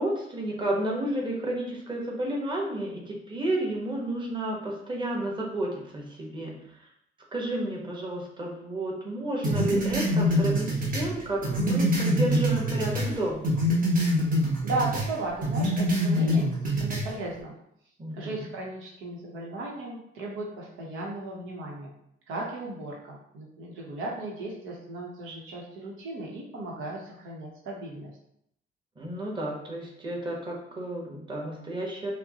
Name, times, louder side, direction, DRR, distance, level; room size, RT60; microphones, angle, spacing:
voice 1, 0.0-6.9 7.3-13.5 18.0-18.5 29.0-32.1, right 1 dB, 25° right, -2 dB, 1.1 m, -31 dB
sound 1, 9.4-13.1 13.4-15.1 15.4-17.1, equal, 45° right, 1.1 m, -25 dB
voice 2, 14.6-17.5 18.1-21.9 22.3-28.2, right 2 dB, 90° right, -3 dB, 0.9 m, -36 dB
5.0 x 2.1 x 2.8 m, 0.75 s
cardioid pair, 90°, 20 cm